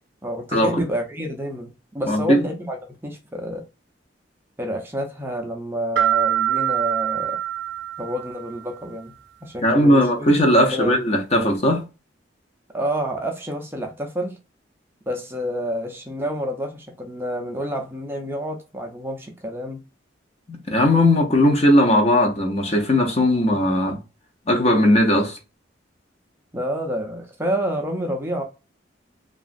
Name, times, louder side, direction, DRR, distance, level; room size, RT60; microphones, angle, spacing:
voice 1, 0.2-3.6 4.6-7.4 8.0-9.1 9.4-10.3 10.6-11.0 12.7-14.4 15.1-19.8 26.5-28.4, equal, 10° right, 0.4 m, -28 dB
voice 2, 2.1-2.4 9.6-11.8 20.5-24.0 24.5-25.4, left 1 dB, 35° left, 0.6 m, -18 dB
sound 1, 6.0-8.6, right 11 dB, 75° right, 0.4 m, -24 dB
2.9 x 2.3 x 2.5 m
head